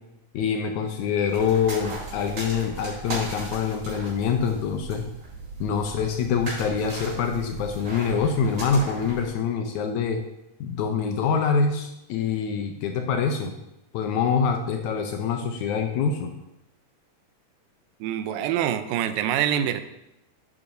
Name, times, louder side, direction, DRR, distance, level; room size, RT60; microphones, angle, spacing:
voice 1, 0.3-5.1 5.6-10.2 10.6-13.5 13.9-16.3, left 6 dB, 75° left, 4 dB, 1.9 m, -25 dB
sound 1, 1.3-9.3, right 2 dB, 45° right, 5.0 m, -37 dB
voice 2, 18.0-19.8, right 10 dB, 85° right, 11 dB, 2.3 m, -25 dB
10.5 x 8.9 x 2.7 m, 0.88 s
omnidirectional pair, 3.9 m